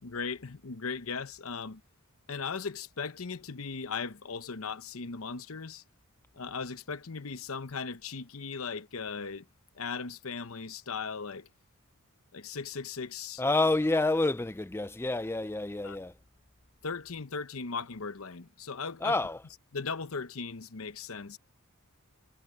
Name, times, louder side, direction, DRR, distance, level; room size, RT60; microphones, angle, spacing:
voice 1, 0.0-1.8 2.3-5.8 6.3-9.5 9.7-11.5 12.3-13.4 15.8-16.0 16.8-19.1 19.7-21.4, left 5 dB, 65° left, 0.9 m, -38 dB
voice 2, 13.4-16.1 19.0-19.4, left 2 dB, 10° left, 0.4 m, -28 dB
head